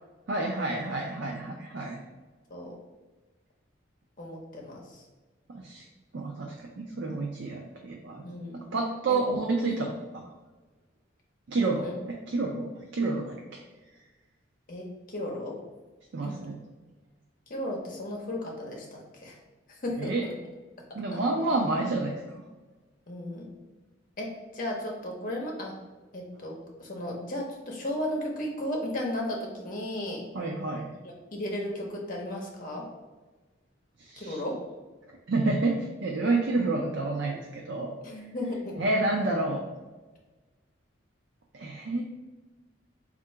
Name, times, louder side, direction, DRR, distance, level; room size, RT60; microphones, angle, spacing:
voice 1, 0.3-2.0 5.5-5.8 6.1-8.2 8.5-10.3 11.5-12.7 12.9-13.4 16.1-16.6 20.0-20.2 20.9-22.4 30.3-30.9 34.0-34.4 35.3-38.0 38.8-39.6 41.5-42.0, right 2 dB, 65° right, 0 dB, 0.5 m, -29 dB
voice 2, 4.2-5.0 8.2-8.6 9.1-9.2 9.7-9.8 11.8-11.9 14.7-15.6 16.2-16.3 17.5-19.4 19.8-20.1 21.1-21.2 23.1-23.5 24.2-25.7 26.1-30.2 31.3-32.9 34.2-34.6 38.0-38.8, left 1 dB, 45° left, -1 dB, 0.8 m, -35 dB
3.7 x 2.5 x 4.3 m, 1.2 s
head